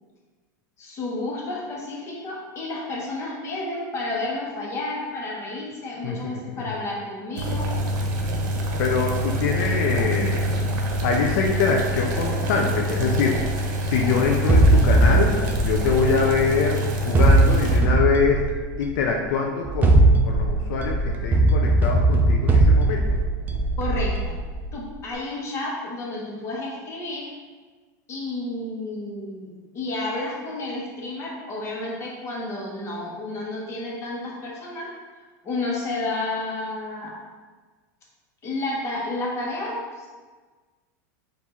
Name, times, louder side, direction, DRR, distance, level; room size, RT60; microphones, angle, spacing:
voice 1, 0.8-7.7 23.8-24.4 24.7-27.3 28.1-34.9 35.4-37.2 38.4-40.1, left 2 dB, 25° left, -3 dB, 1.1 m, -31 dB
voice 2, 6.0-6.7 8.8-10.5 11.0-18.4 18.8-23.2, left 5 dB, 70° left, 1 dB, 0.5 m, -24 dB
sound 1, 7.4-17.8, right 1 dB, 75° right, 0.9 m, -26 dB
sound 2, 14.5-16.6 17.1-19.0 19.6-24.7, right 2 dB, 15° right, 0.4 m, -19 dB
4.6 x 2.7 x 4.3 m, 1.4 s
supercardioid pair, 145°, 10 cm